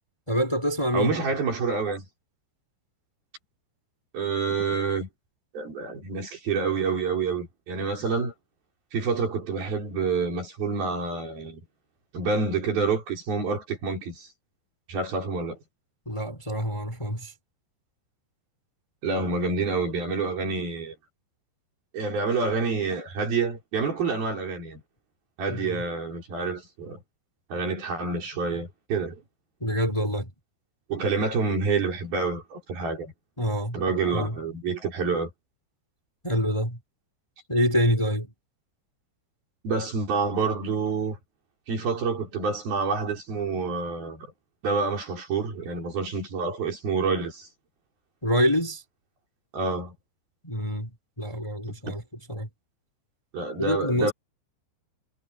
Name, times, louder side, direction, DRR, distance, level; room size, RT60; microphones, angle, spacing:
voice 1, 0.3-1.2 16.1-17.3 25.5-25.8 29.6-30.3 33.4-33.8 34.1-34.4 36.2-36.8 37.5-38.3 48.2-48.8 50.4-52.5 53.6-54.1, equal, 5° left, 4.1 m, -26 dB
voice 2, 0.9-2.0 4.1-5.1 5.5-8.3 8.9-11.6 12.1-14.3 14.9-15.6 19.0-21.0 21.9-24.8 25.4-27.0 27.5-29.2 30.9-33.1 33.7-35.3 39.6-41.2 41.7-44.3 44.6-47.5 49.5-49.9 51.9-52.0 53.3-54.1, right 4 dB, 55° right, 6.7 m, -28 dB
omnidirectional pair, 5.3 m